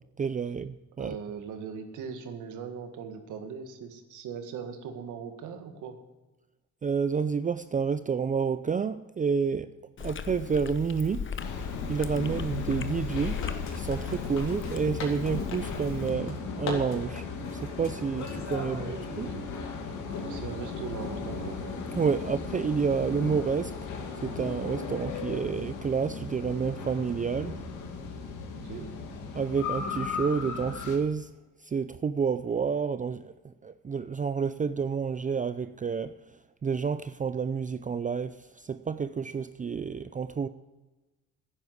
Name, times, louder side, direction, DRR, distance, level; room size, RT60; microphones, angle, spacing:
voice 1, 0.2-1.2 6.8-9.7 10.0-11.3 11.9-13.4 13.7-17.2 17.5-19.3 21.9-23.7 24.2-27.6 29.3-31.3 31.6-36.1 36.6-40.5, right 6 dB, 25° right, 0.5 m, -29 dB
voice 2, 1.0-6.0 18.6-19.5 20.1-21.6 28.6-28.9, right 6 dB, 85° right, 1.8 m, -40 dB
Chewing mastication, 10.0-16.1, left 6 dB, 40° left, 0.9 m, -38 dB
sound 1, 11.4-31.0, left 4 dB, 85° left, 2.3 m, -36 dB
sound 2, 11.7-19.6, left 4 dB, 65° left, 3.9 m, -43 dB
11.0 x 10.0 x 8.0 m
cardioid pair, 90°, 30 cm